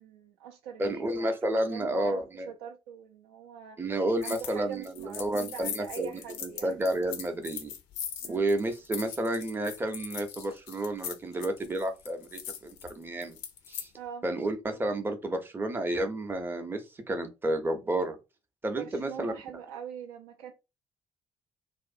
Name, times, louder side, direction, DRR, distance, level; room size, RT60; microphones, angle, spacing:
voice 1, 0.0-1.4 1.7-3.8 4.2-6.8 8.2-8.5 14.0-14.2 18.6-20.5, right 8 dB, 65° right, 0.4 m, -43 dB
voice 2, 0.8-2.5 3.8-7.7 8.3-13.4 13.7-13.9 14.2-18.2 18.6-19.3, right 1 dB, 15° right, 0.6 m, -31 dB
sound 1, 4.2-4.6 4.8-13.9, left 8 dB, 65° left, 0.4 m, -40 dB
2.4 x 2.0 x 2.5 m
figure-of-eight pair, 45°, 13 cm